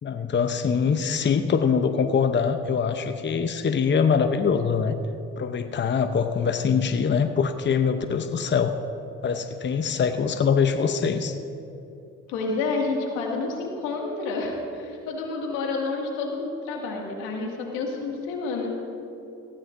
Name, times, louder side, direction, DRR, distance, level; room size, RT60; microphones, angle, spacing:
voice 1, 0.0-4.9 5.4-8.7 9.2-11.3, left 6 dB, 35° left, 8 dB, 0.8 m, -23 dB
voice 2, 12.3-18.8, left 3 dB, 90° left, -1 dB, 2.3 m, -29 dB
18.0 x 16.5 x 2.7 m, 2.8 s
supercardioid pair, 55°, 31 cm